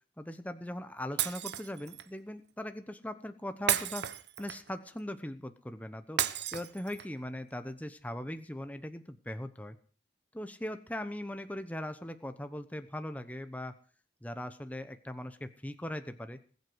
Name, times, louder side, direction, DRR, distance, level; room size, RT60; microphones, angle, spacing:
voice 1, 0.2-4.1 4.4-9.8 10.3-13.7 14.2-16.4, left 1 dB, 10° left, 9 dB, 0.9 m, -40 dB
Shatter, 1.2-2.1 3.7-4.8 6.2-7.2, right 10 dB, 75° right, 1.1 m, -33 dB
20.5 x 8.2 x 7.9 m, 0.41 s
head